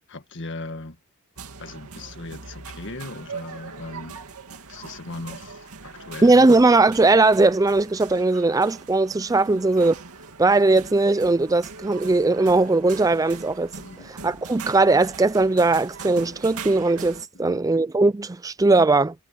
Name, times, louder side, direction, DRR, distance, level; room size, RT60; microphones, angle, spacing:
voice 1, 0.1-1.0 1.6-4.2 4.7-5.7 6.0-6.5 9.5-9.6 13.8-14.1 17.3-17.6, left 2 dB, 55° left, 2.0 m, -38 dB
sound 1, 1.4-17.3, right 5 dB, 80° right, 2.4 m, -41 dB
voice 2, 6.2-9.9 10.4-13.7 14.1-19.1, right 3 dB, 15° right, 0.4 m, -19 dB
head